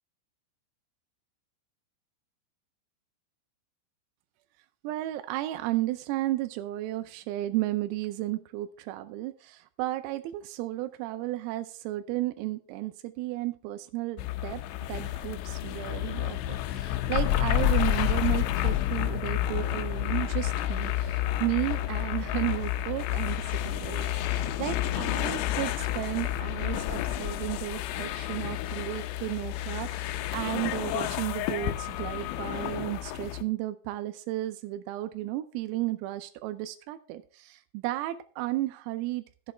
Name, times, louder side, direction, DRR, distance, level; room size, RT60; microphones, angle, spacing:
voice 1, 4.8-14.6 14.9-39.5, right 16 dB, 90° right, 9 dB, 3.4 m, -33 dB
sound 1, 14.2-33.4, left 13 dB, 90° left, 2.5 m, -30 dB
11.5 x 7.3 x 4.4 m, 0.38 s
omnidirectional pair, 5.9 m